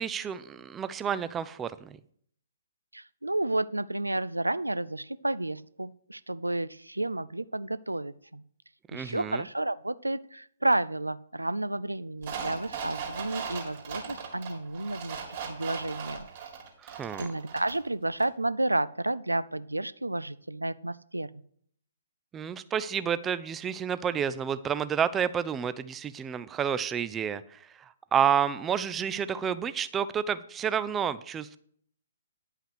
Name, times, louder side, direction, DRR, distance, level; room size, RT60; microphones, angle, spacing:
voice 1, 0.0-2.0 8.9-9.4 16.8-17.3 22.3-31.6, right 8 dB, 15° right, 14 dB, 0.4 m, -30 dB
voice 2, 2.9-8.4 8.9-16.3 17.2-21.4, right 2 dB, 85° right, 16 dB, 0.4 m, -31 dB
sound 1, 12.2-17.9 18.2-18.3, right 6 dB, 40° right, 2.5 m, -38 dB
10.0 x 5.6 x 6.4 m, 0.64 s
figure-of-eight pair, 125°, 0 cm